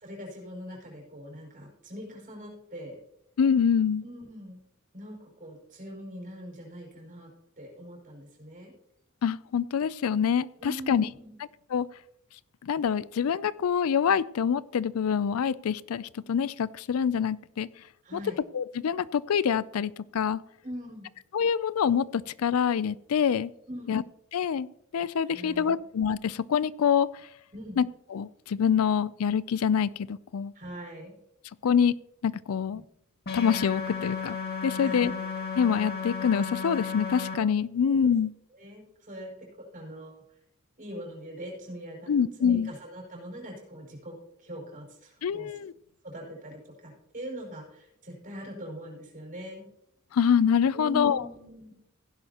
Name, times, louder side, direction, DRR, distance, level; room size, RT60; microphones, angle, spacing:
voice 1, 0.0-3.0 4.0-4.6 4.9-7.3 7.6-8.7 10.6-11.4 18.0-18.4 20.6-21.1 23.7-24.0 25.3-25.8 27.5-27.8 30.5-31.2 32.7-32.8 34.7-35.2 37.8-38.1 38.6-39.5 39.7-40.2 40.8-42.1 42.4-45.5 46.0-49.7 50.7-51.7, equal, 40° right, -1 dB, 5.6 m, -42 dB
voice 2, 3.4-4.0 9.2-11.1 11.7-11.9 12.6-17.7 18.1-18.2 18.5-20.4 21.3-23.5 23.9-24.0 24.3-24.7 24.9-27.1 27.8-27.9 28.1-30.5 31.6-31.9 32.2-32.8 33.3-34.4 34.6-35.1 35.6-38.3 42.1-42.7 45.2-45.7 50.1-51.2, left 7 dB, 90° left, 19 dB, 0.4 m, -25 dB
sound 1, 33.3-37.4, left 5 dB, 50° left, 2.1 m, -34 dB
16.0 x 10.5 x 2.9 m, 0.76 s
head